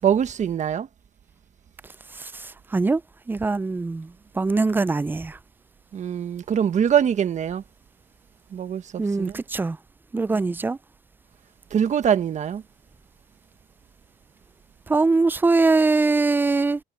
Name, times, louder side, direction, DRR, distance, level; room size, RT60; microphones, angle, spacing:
voice 1, 0.0-0.9 5.9-7.6 8.5-9.4 10.3-10.6 11.7-12.6, right 8 dB, 45° right, 1.4 m, -23 dB
voice 2, 3.3-4.1 4.4-5.4 9.0-9.8 10.1-10.8 14.9-16.8, right 3 dB, 10° right, 0.4 m, -22 dB
cardioid pair, 110°, 17 cm